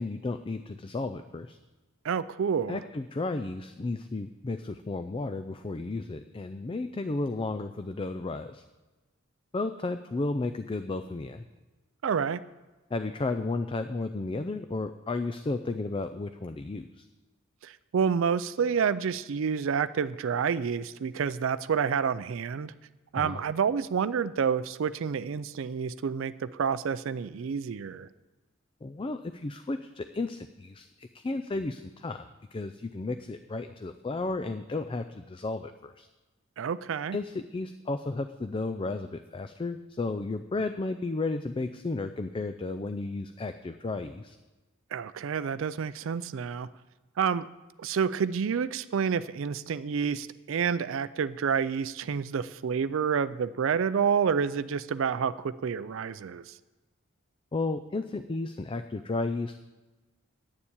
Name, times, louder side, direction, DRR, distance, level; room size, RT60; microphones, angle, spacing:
voice 1, 0.0-1.6 2.7-8.6 9.5-11.4 12.9-17.1 23.1-23.4 28.8-36.1 37.1-44.4 57.5-59.6, left 3 dB, 25° left, 9 dB, 0.4 m, -33 dB
voice 2, 2.0-2.8 12.0-12.4 17.6-22.7 23.1-28.1 36.6-37.2 44.9-46.7 47.2-47.5 47.8-56.5, right 6 dB, 65° right, 15 dB, 0.4 m, -29 dB
9.6 x 7.1 x 8.7 m, 1.2 s
head